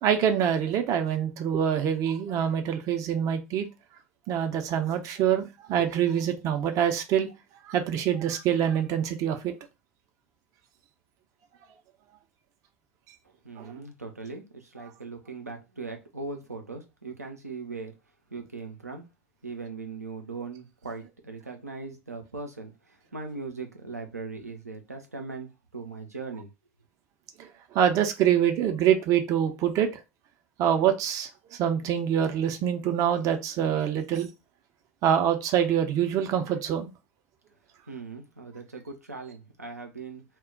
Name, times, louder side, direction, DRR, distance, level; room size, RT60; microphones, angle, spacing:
voice 1, 0.0-3.7 4.3-7.3 7.6-9.5 13.6-13.7 27.4-30.0 30.6-34.3 35.0-36.9, right 9 dB, 40° right, 0.5 m, -25 dB
voice 2, 13.2-17.9 18.3-19.1 19.4-26.5 37.9-40.2, right 4 dB, 85° right, 0.5 m, -39 dB
2.1 x 2.1 x 3.7 m
figure-of-eight pair, 75°, 8 cm